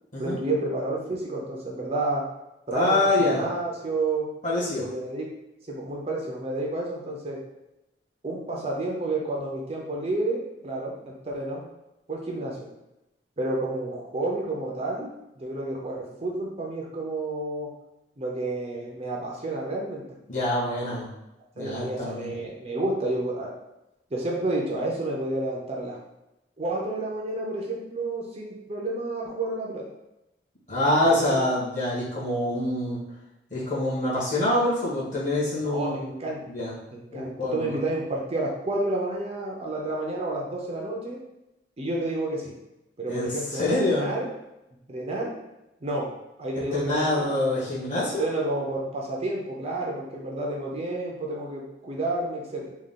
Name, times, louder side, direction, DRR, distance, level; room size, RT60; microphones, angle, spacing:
voice 1, 0.2-2.2 2.7-4.3 4.7-5.3 5.7-7.4 8.2-11.7 12.1-12.7 13.4-15.1 15.4-17.7 18.2-20.0 21.6-23.5 24.1-26.0 26.6-29.8 31.2-31.4 35.6-36.4 36.9-41.2 41.8-42.5 43.0-43.6 44.0-44.3 44.9-45.3 45.8-46.1 46.4-47.1 48.2-52.7, right 2 dB, 35° right, -2 dB, 0.6 m, -30 dB
voice 2, 2.7-3.4 4.4-4.9 20.3-21.1 21.5-22.4 30.7-33.0 33.5-36.2 36.5-36.7 37.1-37.8 43.1-44.1 46.5-48.2, left 1 dB, 45° left, -8 dB, 1.5 m, -25 dB
3.6 x 2.4 x 3.7 m, 0.92 s
head